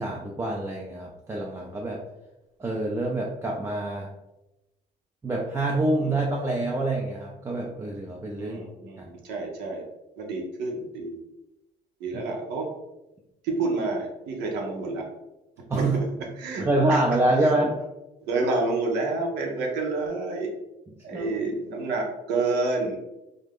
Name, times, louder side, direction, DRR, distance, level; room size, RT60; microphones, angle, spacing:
voice 1, 0.0-2.0 2.6-4.1 5.2-8.6 9.0-9.1 15.7-16.0 16.6-17.7 21.1-21.3, right 2 dB, 15° right, -2 dB, 0.3 m, -26 dB
voice 2, 8.4-9.8 10.2-11.2 12.0-12.7 13.4-15.1 15.8-16.1 16.4-17.0 17.4-17.5 18.2-20.5 21.0-23.0, right 3 dB, 85° right, 0 dB, 0.7 m, -29 dB
2.4 x 2.1 x 3.4 m, 0.96 s
cardioid pair, 110°, 17 cm